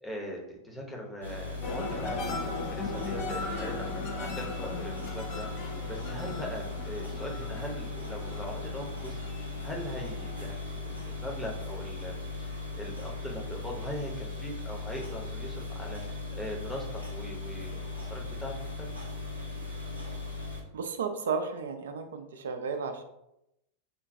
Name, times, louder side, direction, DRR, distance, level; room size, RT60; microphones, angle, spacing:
voice 1, 0.0-2.4 2.7-3.9 4.1-9.2 9.6-12.1 12.4-18.5 18.8-18.9, equal, 10° left, -1 dB, 0.7 m, -40 dB
sound 1, 1.2-20.6, left 3 dB, 90° left, 0.7 m, -38 dB
sound 2, 1.6-10.4 10.9-11.4, left 3 dB, 40° left, 0.4 m, -38 dB
voice 2, 20.7-23.0, right 5 dB, 65° right, 6 dB, 0.4 m, -33 dB
4.3 x 2.2 x 2.6 m, 0.84 s
figure-of-eight pair, 90°, 0 cm